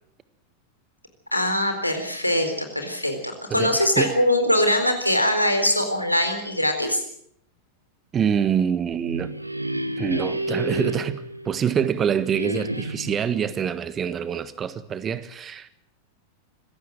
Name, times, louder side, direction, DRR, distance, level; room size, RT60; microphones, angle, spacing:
voice 1, 1.3-7.0, left 1 dB, 85° left, 3.9 m, -22 dB
voice 2, 8.1-9.3 10.0-15.7, right 8 dB, 25° right, 1.5 m, -25 dB
sound 1, 8.8-11.9 12.3-13.3, right 1 dB, 85° right, 1.2 m, -30 dB
25.5 x 16.0 x 7.6 m
figure-of-eight pair, 90°, 0 cm